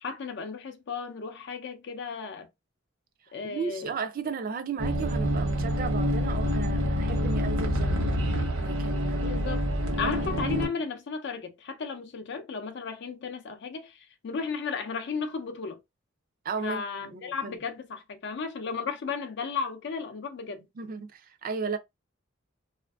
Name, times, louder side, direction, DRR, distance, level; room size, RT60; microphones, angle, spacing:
voice 1, 0.0-2.5 3.3-3.9 9.2-9.7 9.9-15.8 16.6-20.6, left 5 dB, 60° left, 0.5 m, -34 dB
voice 2, 3.4-8.0 8.6-9.4 10.0-10.2 16.4-16.8 17.1-17.6 20.8-21.8, right 5 dB, 45° right, 0.4 m, -35 dB
sound 1, 4.8-10.7, equal, 80° right, 0.8 m, -27 dB
2.5 x 2.5 x 2.3 m
head